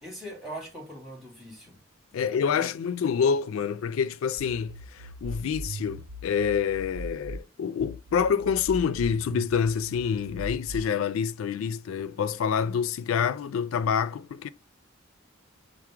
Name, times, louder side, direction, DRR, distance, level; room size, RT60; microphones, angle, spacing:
voice 1, 0.0-1.8 2.1-2.7, right 1 dB, ahead, 2.1 m, -41 dB
voice 2, 2.1-14.5, left 7 dB, 85° left, 0.3 m, -27 dB
sound 1, 4.4-7.4 7.8-10.8, right 1 dB, 75° right, 0.4 m, -40 dB
4.8 x 2.0 x 4.4 m
head